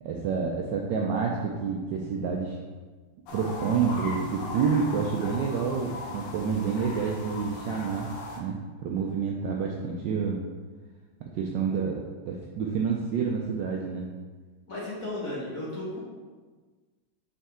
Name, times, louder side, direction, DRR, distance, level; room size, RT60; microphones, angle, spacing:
voice 1, 0.0-2.6 3.3-10.4 11.2-14.1, right 6 dB, 75° right, -1 dB, 1.1 m, -28 dB
sound 1, 3.3-8.4, left 3 dB, 80° left, 1.7 m, -38 dB
voice 2, 14.7-16.0, left 1 dB, 40° left, -6 dB, 1.8 m, -34 dB
5.4 x 5.3 x 3.7 m, 1.4 s
omnidirectional pair, 2.4 m